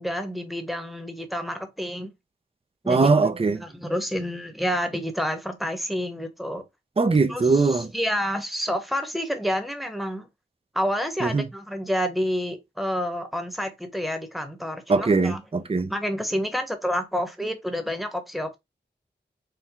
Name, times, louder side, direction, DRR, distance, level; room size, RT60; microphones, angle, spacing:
voice 1, 0.0-2.1 2.8-3.1 3.6-6.6 7.3-10.3 10.7-15.4 15.9-18.6, equal, ahead, 1.0 m, -29 dB
voice 2, 2.9-3.6 7.0-7.9 11.2-11.4 14.9-15.9, right 4 dB, 30° right, 0.6 m, -21 dB
4.6 x 2.2 x 3.6 m
wide cardioid pair, 60°, 19 cm